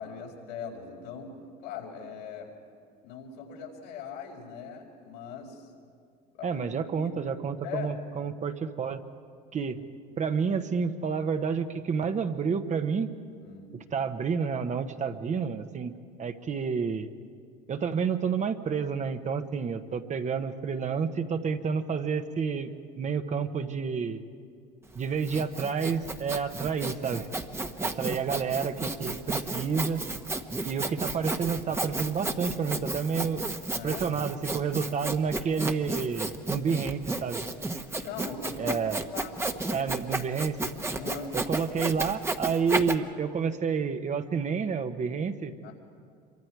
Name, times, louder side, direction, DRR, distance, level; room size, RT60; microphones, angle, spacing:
voice 1, 0.0-2.5 3.0-5.7 6.3-6.7 7.0-7.4 7.6-7.9 13.4-13.7 28.3-28.5 33.7-34.1 38.0-38.8 39.1-40.1 40.9-41.3 45.6-45.7, left 6 dB, 85° left, -1 dB, 4.5 m, -40 dB
voice 2, 6.4-9.0 9.5-9.8 10.2-13.1 13.9-15.9 16.2-17.1 17.7-22.7 23.0-24.2 24.9-27.3 27.8-30.0 30.6-33.4 33.8-37.4 38.6-39.0 39.7-40.7 41.3-45.5, right 6 dB, 35° right, 8 dB, 1.2 m, -29 dB
Sawing, 24.9-42.9, right 2 dB, 10° right, 1.2 m, -33 dB
26.5 x 24.0 x 4.8 m, 2.2 s
supercardioid pair, 85°, 21 cm